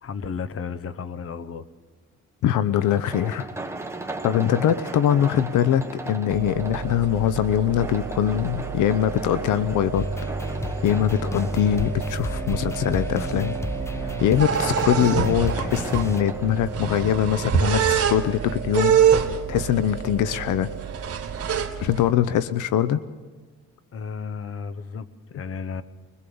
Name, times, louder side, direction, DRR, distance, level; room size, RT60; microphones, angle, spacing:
voice 1, 0.0-1.7 23.9-25.8, left 6 dB, 50° left, 14 dB, 1.1 m, -33 dB
voice 2, 2.4-3.5 4.2-10.0 10.8-13.6 14.2-19.0 19.5-20.7 21.8-23.0, left 10 dB, 85° left, 13 dB, 0.8 m, -22 dB
sound 1, 2.8-17.9, right 2 dB, 10° right, 1.8 m, -38 dB
sound 2, 6.3-22.1, right 8 dB, 55° right, 2.3 m, -27 dB
sound 3, 9.9-16.2, left 1 dB, 10° left, 0.9 m, -32 dB
22.5 x 21.0 x 7.0 m, 1.3 s
cardioid pair, 90°, 30 cm